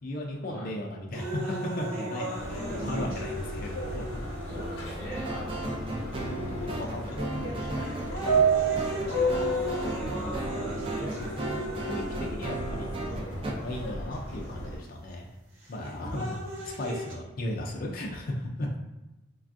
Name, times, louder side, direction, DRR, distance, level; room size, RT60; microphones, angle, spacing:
voice 1, 0.0-4.0 4.5-4.6 6.1-8.3 9.5-9.6 11.0-15.3 15.7-16.4 16.6-18.7, left 1 dB, 45° left, -1 dB, 0.4 m, -36 dB
sound 1, 1.1-5.1 5.9-6.0 6.8-7.1 7.6-13.1 14.1-14.2 15.6-17.1, right 1 dB, 85° right, 0.8 m, -37 dB
Subway metro underground, 2.4-14.8, right 3 dB, 80° left, 0.8 m, -32 dB
voice 2, 2.5-3.1 4.4-5.5 9.9-11.1, equal, 10° left, -9 dB, 1.0 m, -41 dB
sound 2, 5.1-13.5, right 2 dB, 25° right, 0.4 m, -36 dB
3.3 x 2.2 x 2.5 m, 0.99 s
head